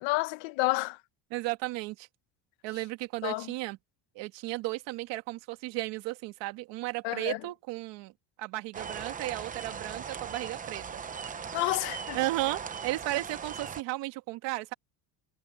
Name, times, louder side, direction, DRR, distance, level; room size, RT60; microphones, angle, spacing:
voice 1, 0.0-1.0 3.2-3.5 7.0-7.4 11.5-12.2, left 21 dB, 75° left, 1.2 m, -30 dB
voice 2, 1.3-2.1 2.6-3.8 4.2-8.1 8.4-11.0 12.1-14.7, right 19 dB, 70° right, 1.8 m, -34 dB
sound 1, 8.7-13.8, right 6 dB, 15° right, 0.8 m, -39 dB
cardioid pair, 165°, 46 cm